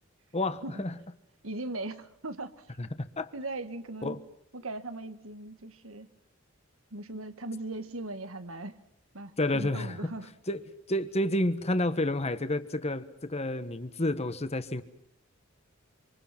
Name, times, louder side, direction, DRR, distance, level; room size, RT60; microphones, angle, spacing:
voice 1, 0.3-0.9 2.8-3.3 4.0-4.2 9.4-10.1 10.5-10.6 10.9-14.8, left 1 dB, 30° left, 1.4 m, -30 dB
voice 2, 1.4-2.7 3.3-4.2 4.5-6.1 6.9-8.8 9.1-10.3, right 2 dB, 85° right, 1.8 m, -39 dB
26.5 x 26.5 x 6.0 m
head